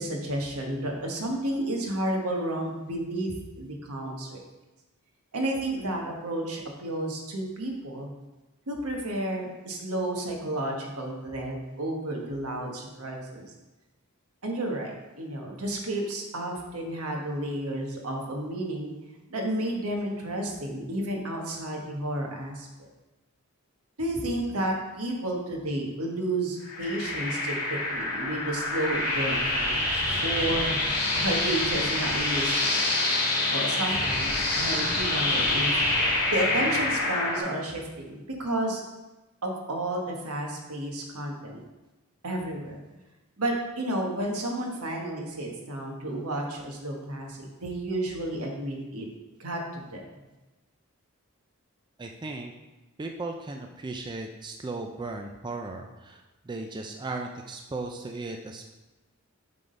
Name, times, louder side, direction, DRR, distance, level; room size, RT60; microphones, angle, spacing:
voice 1, 0.0-4.4 5.3-8.1 8.7-13.4 14.4-18.9 19.3-22.7 24.0-30.8 31.1-32.9 33.5-35.7 36.3-38.8 39.4-41.6 42.2-42.8 43.4-49.1 49.4-50.0, right 1 dB, 75° right, 1 dB, 1.4 m, -31 dB
sound 1, 26.6-37.4, left 2 dB, 75° left, 2.0 m, -27 dB
sound 2, 28.7-37.0, equal, 45° left, 2.7 m, -39 dB
voice 2, 52.0-52.5 53.0-58.6, right 3 dB, 20° right, 3 dB, 0.4 m, -36 dB
7.7 x 3.8 x 5.2 m, 1.1 s
head